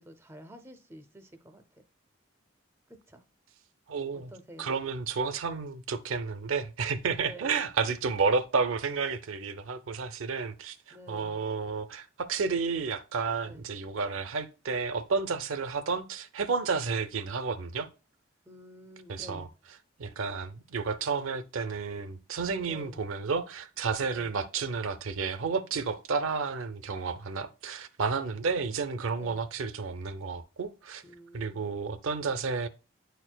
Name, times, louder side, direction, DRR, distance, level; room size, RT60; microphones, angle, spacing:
voice 1, 0.0-1.8 2.9-3.2 4.1-4.7 7.2-7.7 10.9-11.5 13.4-13.6 18.4-19.5 22.6-23.0 29.1-29.4 31.0-31.8, equal, 10° right, 0.4 m, -49 dB
voice 2, 3.9-4.3 4.6-17.9 19.1-19.5 20.0-31.0 31.3-32.7, right 5 dB, 85° right, 0.5 m, -31 dB
9.3 x 4.5 x 2.2 m
head